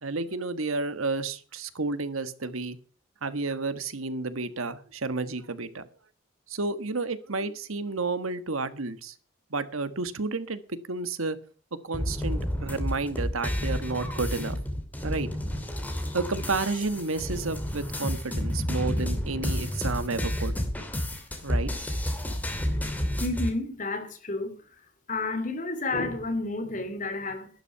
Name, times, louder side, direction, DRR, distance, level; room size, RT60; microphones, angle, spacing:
voice 1, 0.0-2.8 3.2-5.9 6.5-9.1 9.5-10.6 10.9-11.4 11.8-14.6 15.0-15.3 16.1-20.5 21.4-21.7, right 3 dB, 85° right, 1.4 m, -31 dB
sound 1, 11.9-23.5, left 1 dB, 10° left, 2.4 m, -30 dB
voice 2, 23.2-24.6 25.1-27.5, left 2 dB, 40° left, 2.7 m, -30 dB
12.0 x 11.5 x 5.7 m
head